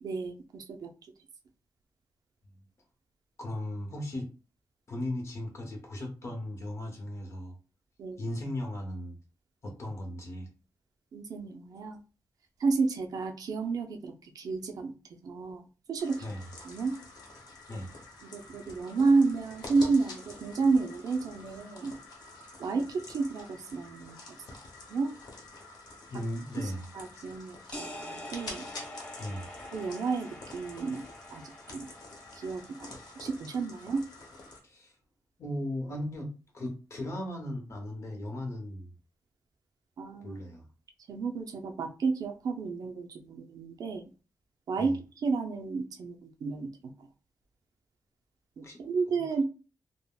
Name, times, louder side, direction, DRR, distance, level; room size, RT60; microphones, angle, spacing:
voice 1, 0.0-0.9 8.0-8.2 11.1-12.0 12.6-14.9 15.2-15.6 15.9-16.2 16.6-16.9 18.2-21.9 22.6-24.4 24.9-25.1 26.9-28.7 29.7-31.0 31.3-31.4 31.7-31.9 32.4-34.0 40.0-40.4 41.1-44.0 44.7-46.7 48.6-49.4, right 4 dB, 65° right, 4 dB, 0.4 m, -31 dB
voice 2, 3.4-4.3 4.9-7.6 8.2-9.2 9.6-10.5 16.2-16.4 17.7-17.9 26.1-27.2 29.2-29.5 34.6-34.9 35.4-38.9 40.2-40.7 44.8-45.0 48.6-48.8 49.1-49.2, left 1 dB, 45° left, 3 dB, 0.8 m, -37 dB
sound 1, 16.0-34.6, left 2 dB, 80° left, 0.9 m, -48 dB
sound 2, 27.7-33.3, left 1 dB, 15° left, 0.9 m, -46 dB
3.6 x 2.0 x 2.2 m, 0.33 s
wide cardioid pair, 165°, 7 cm